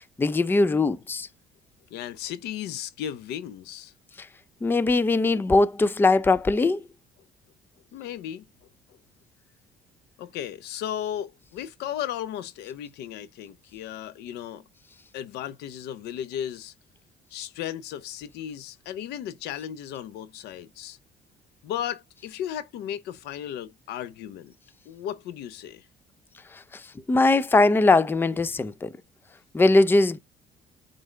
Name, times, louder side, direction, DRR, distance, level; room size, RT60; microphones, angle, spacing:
voice 1, 0.2-1.3 4.2-4.3 4.6-6.8 26.5-26.8 27.1-28.9 29.5-30.2, left 3 dB, 10° left, 0.4 m, -21 dB
voice 2, 1.9-3.9 7.9-8.5 10.2-14.6 15.1-16.7 17.3-21.0 21.6-24.5 24.9-25.9, left 10 dB, 85° left, 0.7 m, -35 dB
9.0 x 3.8 x 3.3 m
cardioid pair, 110°, 17 cm